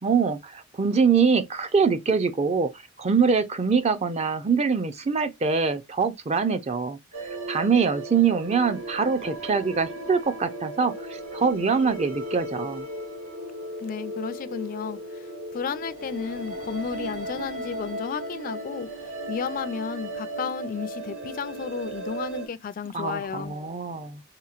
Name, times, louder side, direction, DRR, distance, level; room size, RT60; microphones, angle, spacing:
voice 1, 0.0-2.7 3.0-12.9 22.9-24.2, right 5 dB, 35° right, 0.5 m, -24 dB
sound 1, 7.1-22.5, right 1 dB, 85° right, 1.5 m, -36 dB
voice 2, 13.8-18.9 19.3-23.6, left 6 dB, 45° left, 0.3 m, -33 dB
3.5 x 2.9 x 2.4 m
head